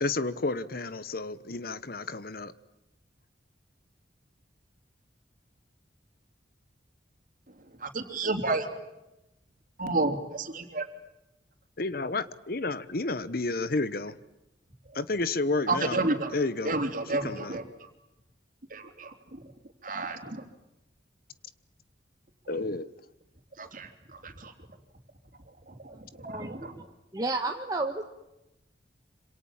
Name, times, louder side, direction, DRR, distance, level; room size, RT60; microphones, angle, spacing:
voice 1, 0.0-2.5 11.8-14.2 14.9-16.0 16.3-16.8 17.1-17.6 22.5-22.9, left 3 dB, 55° left, 15 dB, 1.1 m, -31 dB
voice 2, 7.8-8.7 9.8-10.9 15.7-16.3 16.6-17.6 18.7-19.1 19.8-20.4 23.6-23.9 24.2-24.5 26.3-26.7, right 2 dB, 45° right, 6 dB, 3.6 m, -30 dB
voice 3, 26.2-26.8 27.1-28.1, right 2 dB, 20° right, 3 dB, 1.5 m, -32 dB
27.0 x 27.0 x 7.4 m, 0.93 s
head